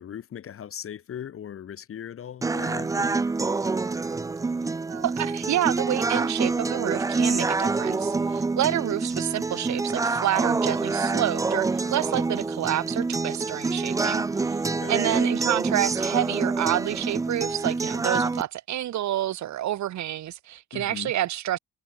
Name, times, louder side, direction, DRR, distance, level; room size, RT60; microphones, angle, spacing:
voice 1, 0.0-3.3 14.7-15.0 20.7-21.1, left 9 dB, 45° left, 0.9 m, -39 dB
sound 1, 2.4-18.4, right 3 dB, 10° right, 0.3 m, -26 dB
voice 2, 4.9-14.6 14.9-21.6, right 13 dB, 70° right, 1.3 m, -28 dB
cardioid pair, 90°, 30 cm